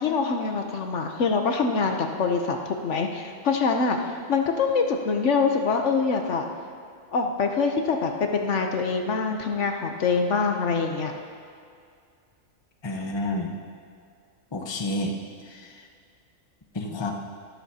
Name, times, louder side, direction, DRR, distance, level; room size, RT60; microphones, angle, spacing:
voice 1, 0.0-4.0 4.3-6.4 7.1-11.1, left 4 dB, 65° left, 3 dB, 1.1 m, -24 dB
voice 2, 12.8-13.6 14.5-15.2 15.4-15.9 16.7-17.1, left 1 dB, 25° left, 2 dB, 0.9 m, -30 dB
17.5 x 12.5 x 2.8 m, 2.2 s
omnidirectional pair, 1.4 m